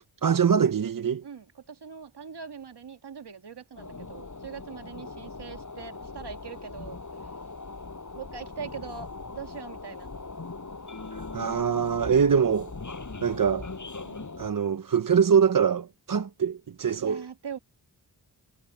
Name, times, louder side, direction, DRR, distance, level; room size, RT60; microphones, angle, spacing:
voice 1, 0.2-1.2 11.1-12.7 13.2-13.7 14.4-17.2, right 7 dB, 50° right, 0.8 m, -23 dB
voice 2, 1.2-7.3 8.1-10.1 14.0-14.3 17.0-17.6, right 6 dB, 65° right, 2.2 m, -42 dB
sound 1, 3.8-14.5, left 3 dB, 45° left, 6.1 m, -40 dB
wide cardioid pair, 65°, 43 cm